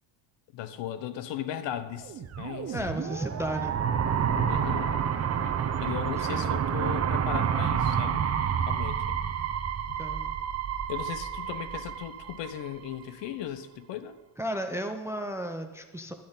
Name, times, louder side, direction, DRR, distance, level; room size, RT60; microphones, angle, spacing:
voice 1, 0.5-2.9 4.5-4.9 5.8-8.2 8.7-9.2 9.9-10.0 10.9-14.2, left 10 dB, 65° left, 12 dB, 1.0 m, -37 dB
radio galactic fear, 2.0-12.9, right 8 dB, 30° right, 0.8 m, -29 dB
voice 2, 2.7-3.8 6.2-6.6 10.0-10.4 14.4-16.1, right 1 dB, 5° right, 7 dB, 0.4 m, -34 dB
12.5 x 12.0 x 4.0 m, 1.2 s
cardioid pair, 160°, 47 cm